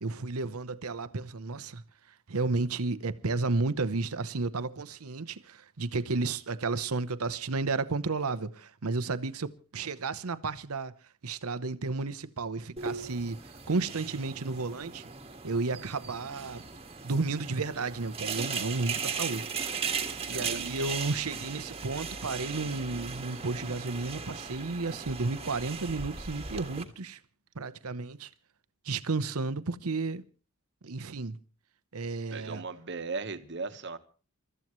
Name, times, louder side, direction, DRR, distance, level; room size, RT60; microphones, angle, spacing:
voice 1, 0.0-1.8 2.3-10.9 11.2-15.0 15.4-16.6 17.0-19.5 19.8-27.2 27.5-28.3 28.8-30.2 30.8-31.4 31.9-32.6, right 3 dB, 90° right, 0.9 m, -32 dB
sound 1, 12.8-26.8, right 6 dB, 30° right, 1.7 m, -37 dB
voice 2, 20.3-20.6 32.3-34.0, right 4 dB, 55° right, 1.3 m, -37 dB
28.5 x 13.5 x 3.1 m
head